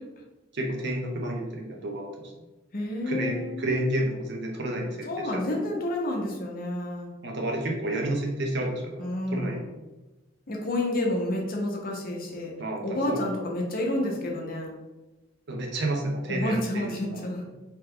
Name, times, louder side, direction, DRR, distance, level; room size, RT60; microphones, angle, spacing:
voice 1, 0.5-2.3 3.0-5.4 7.2-9.6 12.6-13.2 15.5-17.2, right 1 dB, 60° right, 0 dB, 0.6 m, -30 dB
voice 2, 2.7-3.6 5.1-7.1 9.0-9.7 10.5-12.5 12.8-14.7 16.3-17.4, left 1 dB, 50° left, 0 dB, 0.6 m, -29 dB
2.9 x 2.2 x 3.5 m, 1.1 s
head